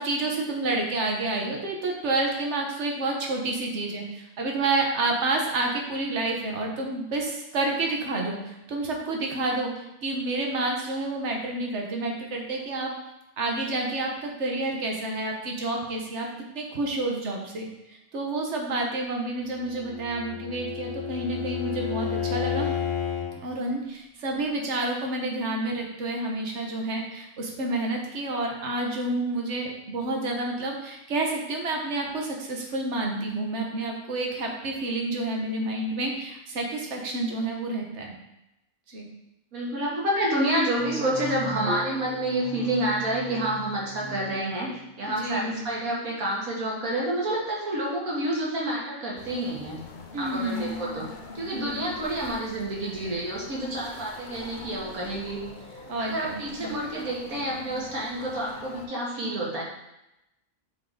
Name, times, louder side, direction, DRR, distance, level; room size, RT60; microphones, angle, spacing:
voice 1, 0.0-12.9 13.4-16.3 16.5-22.7 23.4-38.1 38.9-39.1 45.1-45.7 50.1-50.8 51.5-51.8 55.9-56.8, right 2 dB, 55° right, 1 dB, 1.3 m, -29 dB
Bowed string instrument, 19.7-23.4, left 8 dB, 85° left, 1.4 m, -31 dB
voice 2, 39.5-49.8 50.2-51.1 51.3-55.4 55.7-59.6, right 1 dB, 70° right, -4 dB, 1.9 m, -29 dB
sound 1, 40.8-45.3, right 1 dB, ahead, 0.8 m, -39 dB
sound 2, 49.2-58.9, left 4 dB, 50° left, 0.6 m, -44 dB
7.8 x 3.8 x 3.8 m, 0.89 s
omnidirectional pair, 1.5 m